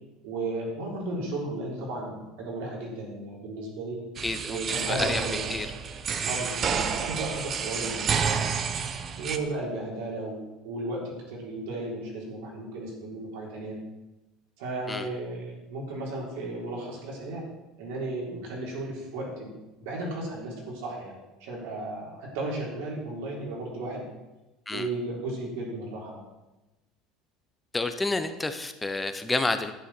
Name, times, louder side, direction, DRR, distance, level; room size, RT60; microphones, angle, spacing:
voice 1, 0.2-4.1 4.5-5.6 6.2-8.5 9.2-13.8 14.6-17.4 17.8-24.1 24.7-26.2, right 2 dB, 80° right, -3 dB, 4.1 m, -34 dB
voice 2, 4.2-5.7 14.9-15.1 24.7-24.9 27.7-29.7, left 2 dB, 10° left, 9 dB, 0.9 m, -30 dB
sound 1, 4.2-9.4, right 6 dB, 35° right, 0.9 m, -30 dB
11.5 x 9.2 x 4.5 m, 1.0 s
supercardioid pair, 120°, 0 cm